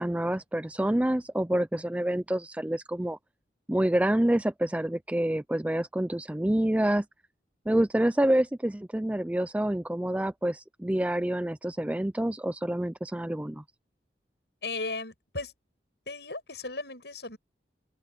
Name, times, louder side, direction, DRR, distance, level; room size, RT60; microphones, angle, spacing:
voice 1, 0.0-3.2 3.7-7.0 7.7-13.6, right 1 dB, 10° right, 0.4 m, -27 dB
voice 2, 14.6-15.5 16.1-17.4, left 3 dB, 70° left, 7.4 m, -36 dB
open air
head